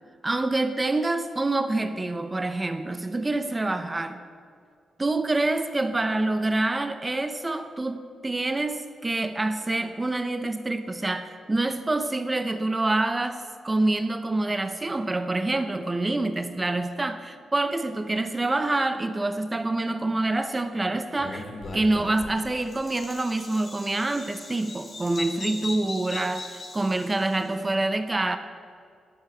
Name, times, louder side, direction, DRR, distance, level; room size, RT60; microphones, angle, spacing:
voice 1, 0.2-4.2 5.0-21.5 21.7-28.4, right 2 dB, 20° right, 9 dB, 0.7 m, -26 dB
Bird vocalization bird call bird song, 21.2-27.5, left 2 dB, 40° left, 3.0 m, -39 dB
12.5 x 11.5 x 6.8 m, 2.2 s
cardioid pair, 120°, 0 cm